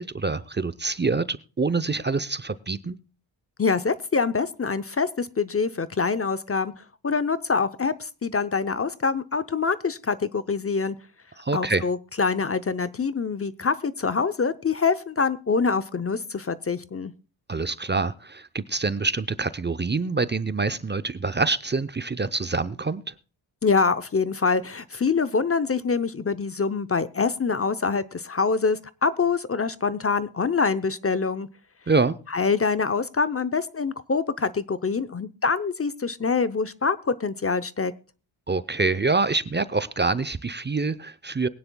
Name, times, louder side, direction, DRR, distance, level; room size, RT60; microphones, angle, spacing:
voice 1, 0.0-3.0 11.4-11.8 17.5-23.1 31.9-32.2 38.5-41.5, right 3 dB, 25° right, 14 dB, 0.7 m, -26 dB
voice 2, 3.6-6.7 7.0-11.0 11.5-17.1 23.6-31.5 32.3-37.9, left 5 dB, 30° left, 13 dB, 0.7 m, -25 dB
22.5 x 9.7 x 2.3 m, 0.35 s
cardioid pair, 90°, 46 cm